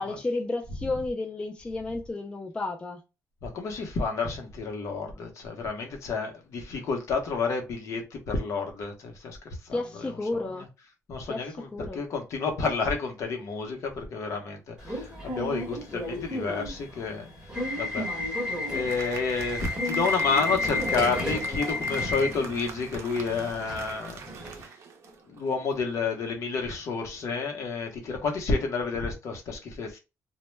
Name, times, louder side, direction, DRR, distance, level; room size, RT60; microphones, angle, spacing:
voice 1, 0.0-3.0 9.7-10.7 11.3-12.0, left 2 dB, 15° left, 0.3 m, -32 dB
voice 2, 3.4-9.4 9.7-10.4 11.1-17.3 17.8-24.2 25.3-30.0, left 4 dB, 60° left, 0.7 m, -30 dB
Subway metro underground / Alarm, 14.8-24.6, left 2 dB, 10° right, 1.0 m, -32 dB
Applause, 18.3-25.6, right 6 dB, 55° right, 0.5 m, -44 dB
2.1 x 2.0 x 3.1 m
cardioid pair, 145°, 6 cm